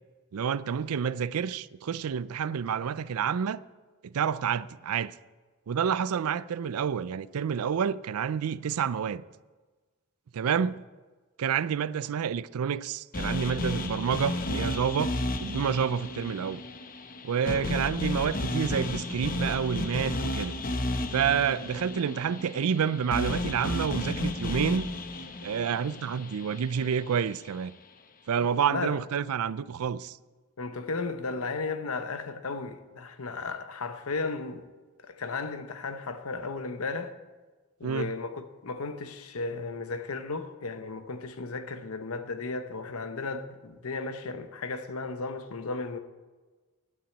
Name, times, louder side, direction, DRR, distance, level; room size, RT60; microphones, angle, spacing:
voice 1, 0.3-3.6 4.0-5.1 5.7-9.2 10.3-10.8 11.4-16.6 17.2-20.5 21.1-24.9 25.4-27.7 28.3-30.2 37.8-38.1, right 7 dB, 75° right, 0.4 m, -29 dB
sound 1, 13.1-27.3, left 2 dB, 40° left, 0.9 m, -33 dB
voice 2, 17.4-17.7 28.6-28.9 30.6-34.7 35.0-37.1 37.8-46.0, left 3 dB, 75° left, 0.8 m, -35 dB
9.8 x 8.9 x 8.5 m
head